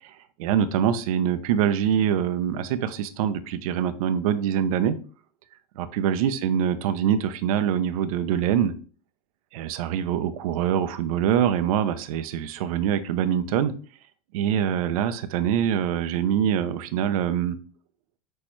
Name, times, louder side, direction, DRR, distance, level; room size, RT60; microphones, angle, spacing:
voice 1, 0.4-5.0 5.8-8.7 9.5-13.7 14.3-17.6, right 9 dB, 75° right, 11 dB, 0.5 m, -24 dB
6.2 x 2.3 x 3.0 m, 0.40 s
hypercardioid pair, 90°, 19 cm